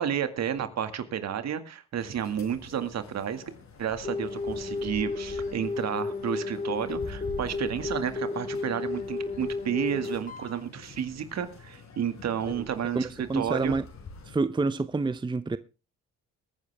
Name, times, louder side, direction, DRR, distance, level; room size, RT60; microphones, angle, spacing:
voice 1, 0.0-3.4 3.8-13.8, right 8 dB, 60° right, 2.0 m, -31 dB
sound 1, 1.9-14.4, left 4 dB, 65° left, 4.8 m, -47 dB
sound 2, 4.0-10.6 12.4-12.6, left 3 dB, 25° left, 3.5 m, -33 dB
voice 2, 12.9-13.8 14.3-15.6, right 3 dB, 15° right, 0.7 m, -28 dB
21.5 x 9.8 x 3.4 m
cardioid pair, 90°, 30 cm